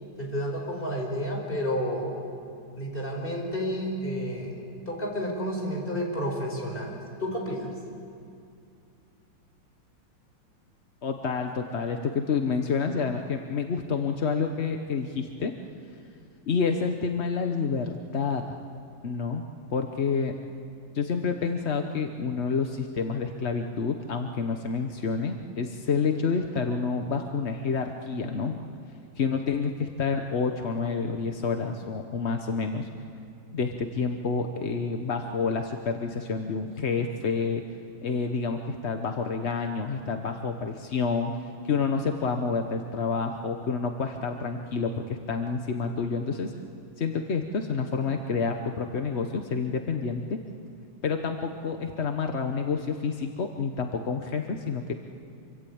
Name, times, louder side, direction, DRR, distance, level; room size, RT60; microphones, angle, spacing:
voice 1, 0.2-2.1 2.8-4.6 4.9-7.7, equal, 25° left, 0 dB, 5.2 m, -31 dB
voice 2, 11.0-15.5 16.5-18.5 19.0-19.4 19.7-20.3 20.9-28.6 29.2-32.9 33.5-37.6 38.0-41.3 41.6-46.5 47.0-50.4 51.0-54.9, left 5 dB, 45° left, 5 dB, 1.0 m, -28 dB
26.5 x 24.0 x 8.7 m, 2.4 s
omnidirectional pair, 2.3 m